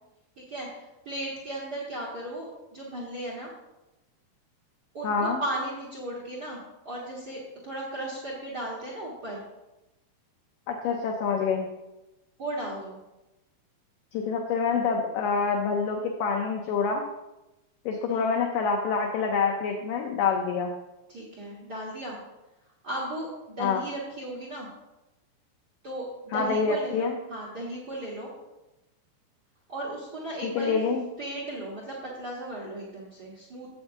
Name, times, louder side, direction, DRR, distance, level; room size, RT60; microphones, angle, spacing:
voice 1, 0.4-2.5 2.7-3.5 4.9-9.4 12.4-13.0 18.1-18.4 21.1-22.2 22.8-24.7 25.8-28.3 29.7-30.7 31.2-33.7, right 1 dB, 60° right, -4 dB, 1.0 m, -36 dB
voice 2, 5.0-5.4 10.7-11.7 14.1-17.1 17.9-20.7 23.6-23.8 26.3-27.2 30.4-31.0, left 5 dB, 75° left, 2 dB, 2.1 m, -26 dB
14.5 x 8.4 x 2.7 m, 0.97 s
omnidirectional pair, 4.6 m